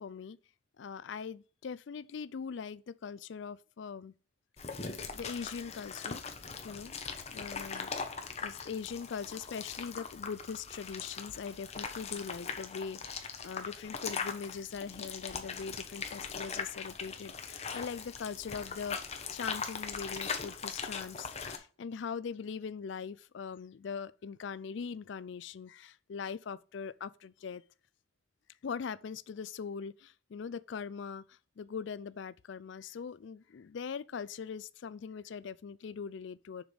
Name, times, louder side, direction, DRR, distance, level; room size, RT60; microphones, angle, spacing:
voice 1, 0.0-0.4 0.8-4.1 5.1-6.2 6.6-6.9 7.3-7.9 8.4-19.0 19.3-27.6 28.6-36.6, left 6 dB, 65° left, 0.4 m, -41 dB
sound 1, 4.6-21.6, left 5 dB, 35° left, 1.0 m, -40 dB
7.1 x 5.2 x 5.1 m
head